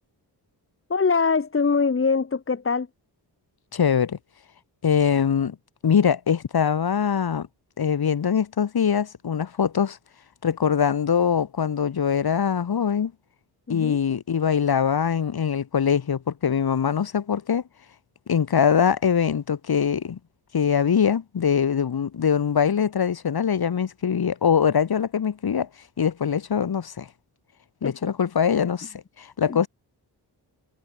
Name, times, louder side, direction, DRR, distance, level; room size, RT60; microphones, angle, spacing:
voice 1, 0.9-2.9 13.7-14.0 27.8-28.1 29.5-29.7, left 5 dB, 30° left, 1.8 m, -23 dB
voice 2, 3.7-4.2 4.8-5.6 5.8-7.5 7.8-10.0 10.4-13.1 13.7-17.6 18.3-20.2 20.5-25.7 26.0-27.1 27.8-29.7, left 7 dB, 65° left, 3.6 m, -23 dB
wide cardioid pair, 160°, 41 cm